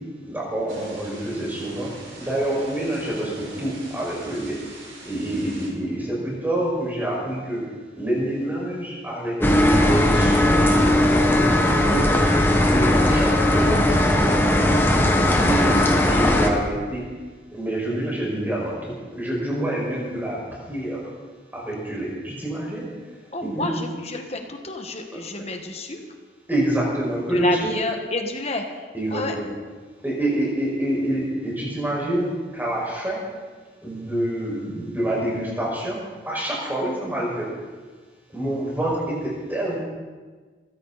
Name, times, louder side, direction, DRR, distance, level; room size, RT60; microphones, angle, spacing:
voice 1, 0.3-1.9 2.2-4.5 5.0-7.6 8.0-12.1 12.5-15.1 15.4-17.0 17.5-20.4 20.7-21.0 21.5-22.9 23.4-23.7 26.5-27.7 28.9-29.5 30.0-33.2 33.8-37.5 38.3-39.8, right 1 dB, 10° right, -5 dB, 5.7 m, -27 dB
Thunder / Rain, 0.7-5.7, right 2 dB, 85° right, 5.8 m, -41 dB
sound 1, 9.4-16.5, left 1 dB, 10° left, 1.4 m, -18 dB
voice 2, 23.3-26.0 27.3-28.8 29.1-29.3, left 2 dB, 35° left, 4 dB, 1.5 m, -29 dB
22.5 x 15.0 x 4.2 m, 1.4 s
head